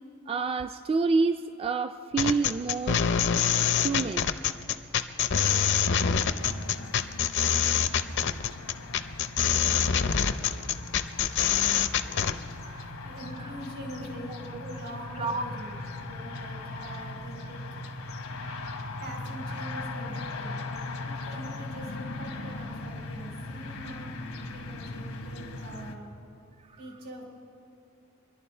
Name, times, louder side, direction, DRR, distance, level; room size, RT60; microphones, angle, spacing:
voice 1, 0.3-3.1 3.8-4.3 5.6-5.7 12.6-12.9 13.4-13.5 14.5-14.6 15.1-15.4 18.4-18.8, right 4 dB, 25° right, 9 dB, 0.3 m, -29 dB
sound 1, 2.2-12.4, left 7 dB, 60° left, 0.6 m, -25 dB
sound 2, 6.4-25.9, left 2 dB, 85° left, 1.2 m, -39 dB
voice 2, 13.0-17.6 19.0-20.6 21.0-26.1 26.8-27.2, right 1 dB, 85° right, -1 dB, 4.2 m, -43 dB
26.0 x 11.0 x 4.4 m, 2.7 s
head